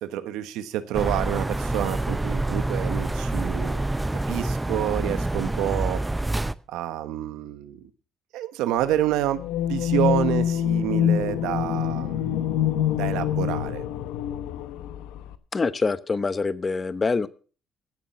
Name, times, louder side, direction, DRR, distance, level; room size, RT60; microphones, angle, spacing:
voice 1, 0.0-3.8 4.1-6.0 6.7-7.8 8.3-9.4 9.7-12.4 13.0-13.8, right 12 dB, 85° right, 12 dB, 1.1 m, -28 dB
sound 1, 0.9-6.5, right 2 dB, 15° right, 0.6 m, -27 dB
sound 2, 9.4-15.4, left 10 dB, 90° left, 0.9 m, -25 dB
voice 2, 15.5-17.3, left 4 dB, 30° left, 16 dB, 0.9 m, -25 dB
16.0 x 7.3 x 5.7 m, 0.39 s
supercardioid pair, 80°, 0 cm